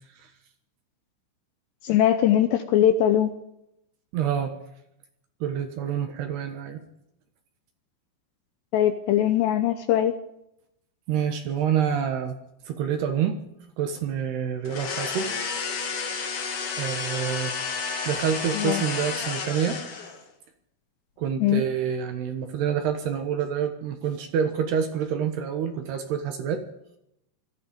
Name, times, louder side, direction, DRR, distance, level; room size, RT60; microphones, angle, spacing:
voice 1, 1.8-3.3 8.7-10.1 18.5-18.8 21.4-21.6, left 11 dB, 80° left, 8 dB, 2.6 m, -21 dB
voice 2, 4.1-4.5 5.4-6.8 11.1-12.4 12.7-13.4 13.8-15.3 16.8-17.5 18.1-19.8 21.2-26.6, right 8 dB, 70° right, 6 dB, 2.9 m, -27 dB
sound 1, 14.6-20.3, left 5 dB, 60° left, 1.6 m, -31 dB
19.0 x 14.0 x 5.2 m, 0.80 s
omnidirectional pair, 5.8 m